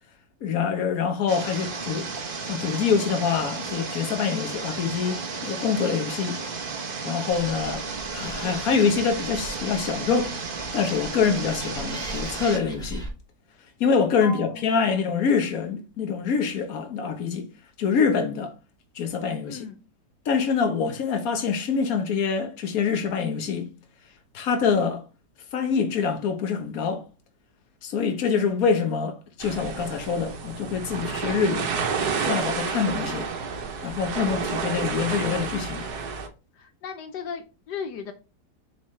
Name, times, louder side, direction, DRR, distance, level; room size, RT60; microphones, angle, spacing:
voice 1, 0.4-2.1 2.4-5.2 5.4-6.4 7.0-7.8 8.1-10.3 10.7-13.0 13.8-17.5 17.8-18.5 18.9-19.6 20.2-23.7 24.3-25.0 25.5-27.0 27.8-31.7 32.2-33.3 33.8-35.9, left 6 dB, 60° left, 1.5 m, -25 dB
sound 1, 1.3-12.6, right 4 dB, 40° right, 0.9 m, -33 dB
Animal, 7.3-13.1, right 1 dB, ahead, 1.8 m, -40 dB
voice 2, 14.2-14.6 19.4-19.8 34.3-34.5 36.6-38.1, left 6 dB, 80° left, 1.4 m, -36 dB
sound 2, 29.4-36.3, right 5 dB, 70° right, 1.4 m, -30 dB
7.2 x 4.5 x 3.2 m
omnidirectional pair, 1.8 m